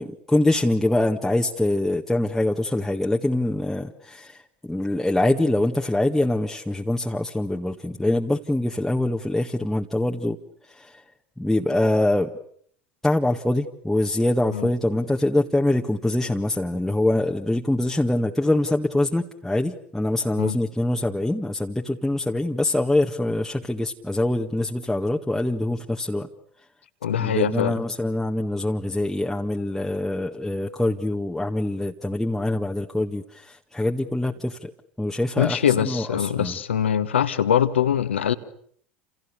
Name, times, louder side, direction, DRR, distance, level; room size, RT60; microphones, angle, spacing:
voice 1, 0.0-10.4 10.6-11.0 11.4-12.3 13.0-26.3 27.2-34.7 35.0-36.6, left 1 dB, 5° left, 1.7 m, -24 dB
voice 2, 27.0-27.7 35.4-38.3, left 9 dB, 75° left, 1.8 m, -22 dB
29.5 x 29.0 x 6.9 m
figure-of-eight pair, 75°, 6 cm